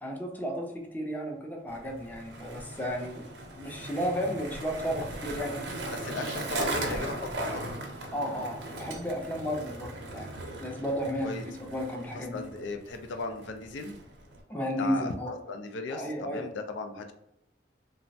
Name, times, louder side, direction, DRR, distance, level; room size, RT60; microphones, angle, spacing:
voice 1, 0.0-3.3 3.6-5.7 8.1-12.4 14.5-15.3 15.9-16.5, equal, 10° left, 0 dB, 0.4 m, -33 dB
Skateboard, 1.7-14.4, right 2 dB, 65° right, 0.6 m, -38 dB
voice 2, 5.9-7.7 11.2-11.4 12.1-14.0 14.8-15.1 15.5-17.1, left 3 dB, 80° left, 6 dB, 0.4 m, -37 dB
3.1 x 2.0 x 2.6 m, 0.84 s
head